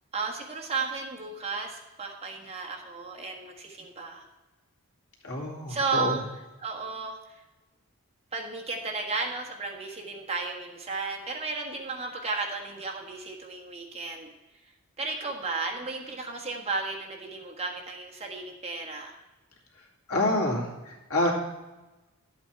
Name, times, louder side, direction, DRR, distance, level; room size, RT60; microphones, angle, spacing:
voice 1, 0.1-4.3 5.7-7.4 8.3-14.3 15.0-19.2, right 4 dB, 30° right, 0 dB, 1.5 m, -34 dB
voice 2, 5.2-6.2 20.1-21.3, left 1 dB, 75° left, -2 dB, 2.5 m, -27 dB
11.5 x 8.1 x 4.6 m, 1.1 s
head